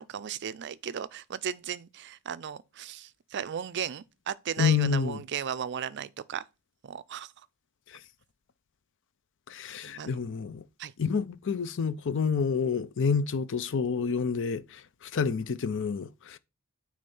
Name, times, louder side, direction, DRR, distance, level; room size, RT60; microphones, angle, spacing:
voice 1, 0.0-6.4 6.8-7.3 9.8-10.2 10.8-10.9, right 8 dB, 50° right, 0.4 m, -36 dB
voice 2, 4.6-5.2 7.9-8.0 9.5-10.6 11.0-16.4, left 6 dB, 55° left, 0.5 m, -29 dB
8.7 x 3.3 x 5.4 m
head